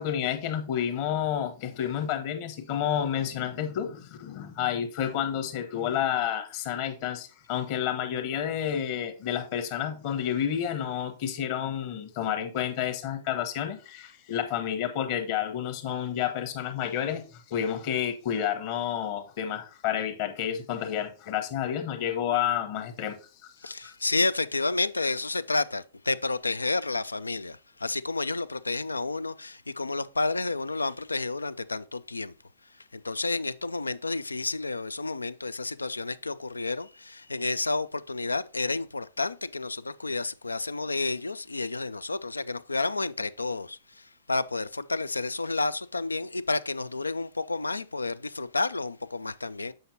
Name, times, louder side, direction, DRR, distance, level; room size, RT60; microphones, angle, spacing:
voice 1, 0.0-23.2 23.6-23.9, left 9 dB, 45° left, 1.1 m, -30 dB
voice 2, 23.6-32.3 32.9-43.8 44.3-49.7, left 3 dB, 85° left, 0.3 m, -30 dB
7.8 x 5.6 x 2.7 m
figure-of-eight pair, 105°, 0 cm